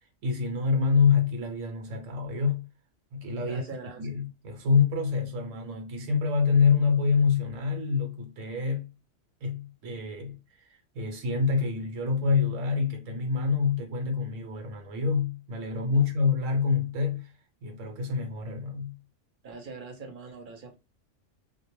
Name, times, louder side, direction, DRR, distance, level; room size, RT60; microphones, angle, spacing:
voice 1, 0.2-2.7 3.1-3.6 4.0-8.9 9.4-17.3 17.6-19.0, left 5 dB, 85° right, 1.0 m, -26 dB
voice 2, 3.4-4.2 15.9-16.0 19.4-20.8, right 4 dB, 55° right, 0.6 m, -43 dB
2.2 x 2.1 x 2.9 m
omnidirectional pair, 1.3 m